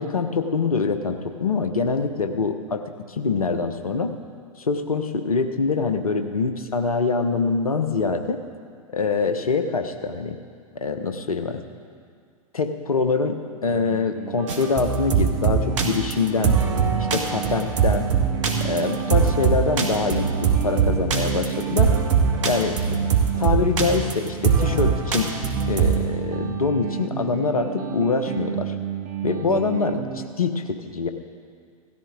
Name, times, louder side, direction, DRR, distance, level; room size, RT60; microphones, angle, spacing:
voice 1, 0.0-2.8 3.1-4.1 4.7-8.4 8.9-10.4 10.7-11.6 12.5-16.5 17.1-18.1 18.6-21.9 22.4-23.0 23.4-25.3 25.7-28.7 29.2-31.1, left 4 dB, 75° left, 8 dB, 1.0 m, -24 dB
sound 1, 13.7-30.3, right 9 dB, 35° right, 0.9 m, -32 dB
sound 2, 14.5-26.0, right 6 dB, 55° right, 1.5 m, -22 dB
17.5 x 13.5 x 3.8 m, 2.2 s
figure-of-eight pair, 100°, 19 cm